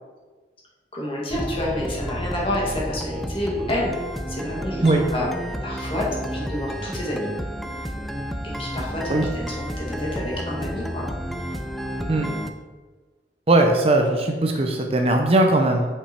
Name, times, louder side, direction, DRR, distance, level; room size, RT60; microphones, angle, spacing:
voice 1, 0.9-3.9 4.3-5.3 5.6-7.3 8.4-11.1, left 1 dB, 30° left, -4 dB, 2.0 m, -29 dB
sound 1, 1.3-12.5, equal, ahead, 0.4 m, -31 dB
voice 2, 13.5-15.9, right 2 dB, 35° right, 3 dB, 0.7 m, -19 dB
7.2 x 5.3 x 4.4 m, 1.3 s
head